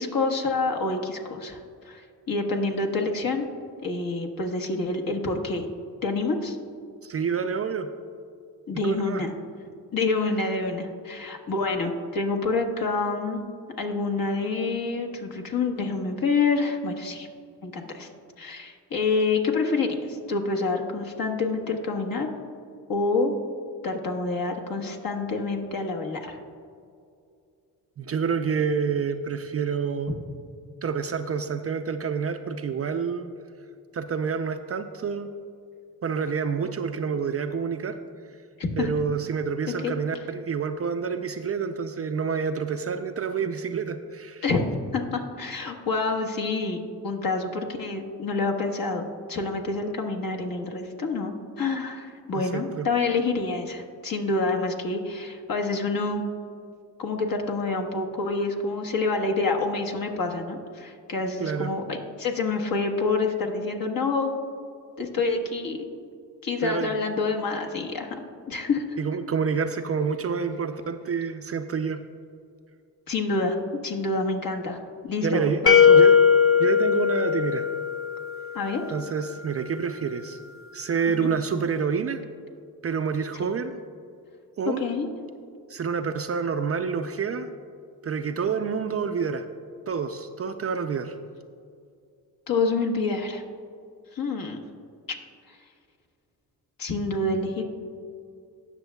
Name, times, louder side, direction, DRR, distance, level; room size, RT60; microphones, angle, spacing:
voice 1, 0.0-3.5 3.8-5.7 6.0-6.6 8.7-9.3 9.9-17.3 17.6-18.1 18.4-22.3 22.9-23.3 23.8-26.4 38.6-38.9 39.7-39.9 44.4-56.2 57.0-64.4 65.0-65.8 66.4-68.2 68.5-69.0 73.1-73.6 73.8-76.0 78.5-78.8 81.2-81.3 83.4-83.5 84.7-85.1 92.5-93.4 94.1-94.6 95.5-95.6 96.8-97.6, left 3 dB, 55° left, 3 dB, 1.3 m, -27 dB
voice 2, 7.0-7.9 8.8-9.2 28.0-30.1 30.8-33.3 33.9-35.3 36.0-38.0 38.8-44.4 52.3-52.9 61.4-61.7 66.6-66.9 69.0-72.0 75.2-75.6 75.9-76.2 76.6-77.7 78.9-80.4 80.7-82.2 82.8-83.7 84.6-84.8 85.7-87.5 88.0-89.4 89.9-91.2, right 6 dB, 35° right, 8 dB, 0.4 m, -28 dB
sound 1, 75.7-78.5, left 7 dB, 35° left, 0.5 m, -18 dB
18.0 x 6.1 x 2.3 m, 2.3 s
supercardioid pair, 60°, 41 cm